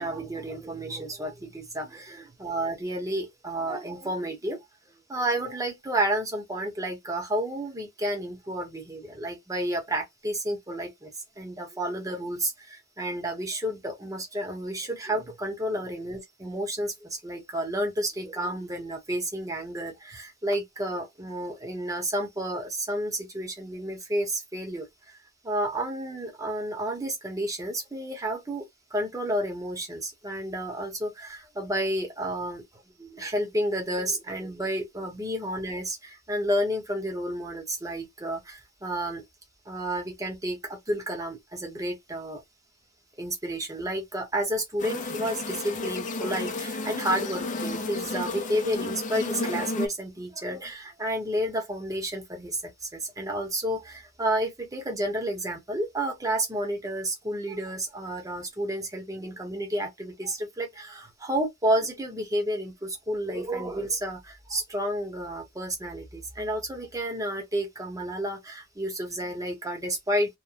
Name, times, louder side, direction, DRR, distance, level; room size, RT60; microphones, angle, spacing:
voice 1, 0.0-4.6 5.1-25.2 25.4-32.6 33.0-39.2 39.7-42.4 43.2-70.4, right 1 dB, 15° right, 0.9 m, -31 dB
sound 1, 44.8-49.9, left 3 dB, 35° left, 0.5 m, -32 dB
3.0 x 2.1 x 2.4 m
head